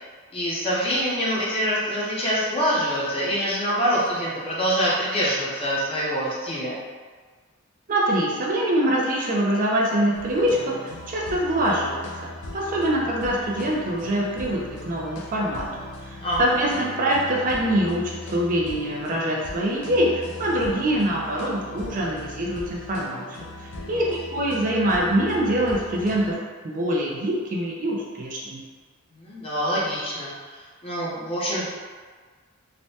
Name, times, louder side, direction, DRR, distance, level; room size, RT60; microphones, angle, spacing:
voice 1, 0.3-6.8 16.2-16.4 29.2-30.3 30.8-31.7, equal, 25° left, -7 dB, 0.7 m, -25 dB
voice 2, 7.9-26.4 26.6-28.6, right 1 dB, 40° right, -3 dB, 0.4 m, -24 dB
sound 1, 10.1-26.3, left 1 dB, 65° left, 0.4 m, -39 dB
3.2 x 2.1 x 2.7 m, 1.5 s
head